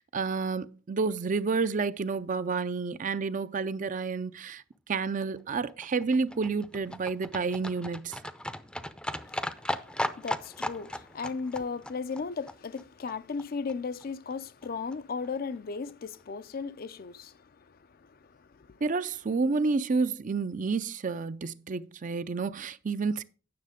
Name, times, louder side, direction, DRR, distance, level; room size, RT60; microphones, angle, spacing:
voice 1, 0.0-4.6 4.9-8.2 18.8-23.2, right 4 dB, 45° right, 0.5 m, -30 dB
Livestock farm animals working animals, 5.2-13.4 13.7-13.8 14.0-14.1 14.3-14.4 14.6-14.7 14.9-15.0 15.2-15.3 15.6-15.7 15.9-16.0, left 1 dB, 5° left, 0.5 m, -37 dB
voice 2, 9.1-18.8, left 5 dB, 50° left, 0.5 m, -37 dB
9.6 x 6.6 x 5.0 m
head